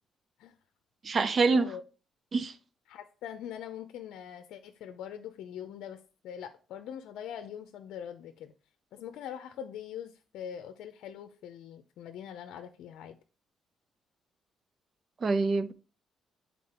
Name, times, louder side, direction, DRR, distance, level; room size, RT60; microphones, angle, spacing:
voice 1, 1.0-1.7 2.3-2.5 15.2-15.7, right 4 dB, 45° right, 0.7 m, -25 dB
voice 2, 2.9-6.0 6.2-8.5 8.9-13.2, left 9 dB, 85° left, 0.6 m, -43 dB
8.4 x 4.2 x 4.3 m
cardioid pair, 90°, 0 cm